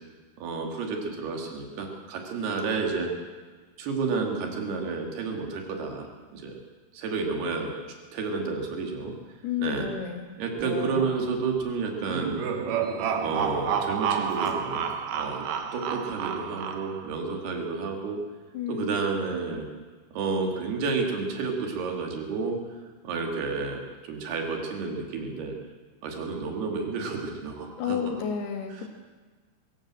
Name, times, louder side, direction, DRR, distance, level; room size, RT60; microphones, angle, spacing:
voice 1, 0.4-3.1 3.8-6.6 6.9-7.7 8.1-9.1 9.6-9.9 10.4-12.4 13.2-14.9 15.1-15.5 15.7-18.2 18.7-19.7 20.1-22.6 23.0-25.6 26.0-28.0 28.7-28.9, right 4 dB, 90° right, 2 dB, 4.5 m, -30 dB
voice 2, 9.4-10.3 18.5-19.0 27.8-28.9, left 8 dB, 90° left, 4 dB, 4.1 m, -31 dB
sound 1, 10.6-11.7 12.7-13.1 13.7-13.8 14.1-14.6 14.8-15.0 15.5-16.2, left 1 dB, 25° right, 4.0 m, -40 dB
sound 2, 12.1-17.2, right 7 dB, 65° right, 2.7 m, -30 dB
23.5 x 14.5 x 7.7 m, 1.4 s
omnidirectional pair, 4.4 m